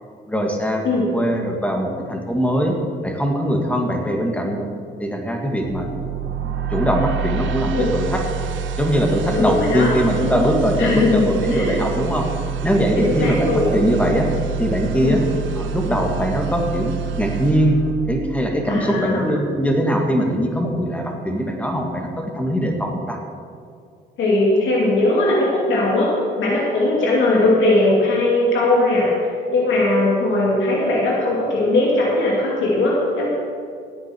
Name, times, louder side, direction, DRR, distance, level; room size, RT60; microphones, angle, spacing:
voice 1, 0.3-0.9 1.1-2.8 3.0-4.7 5.0-5.9 6.4-8.2 8.8-12.3 12.6-14.3 14.6-15.2 15.6-17.8 18.1-23.2, equal, 5° left, 1 dB, 2.1 m, -21 dB
sound 1, 5.6-18.7, right 7 dB, 75° right, 0.8 m, -27 dB
voice 2, 9.3-9.9 10.8-11.8 13.0-13.8 15.0-15.2 18.7-19.3 24.2-33.3, left 2 dB, 75° left, -4 dB, 2.7 m, -19 dB
16.5 x 8.9 x 4.7 m, 2.3 s
cardioid pair, 90°, 20 cm